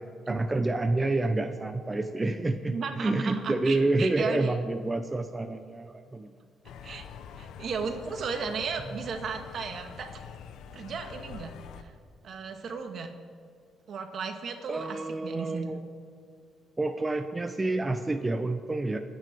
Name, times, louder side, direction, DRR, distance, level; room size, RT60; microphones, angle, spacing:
voice 1, 0.0-6.3 14.7-15.8 16.8-19.0, right 2 dB, 20° right, 7 dB, 0.8 m, -28 dB
voice 2, 2.7-4.5 6.8-7.1 7.4-10.1 10.7-11.5 11.8-11.9 12.2-13.1 13.9-15.7, right 5 dB, 60° right, 5 dB, 2.0 m, -34 dB
sound 1, 6.6-11.8, left 7 dB, 85° left, 0.9 m, -45 dB
27.0 x 9.5 x 4.6 m, 2.2 s
cardioid pair, 90°, 0 cm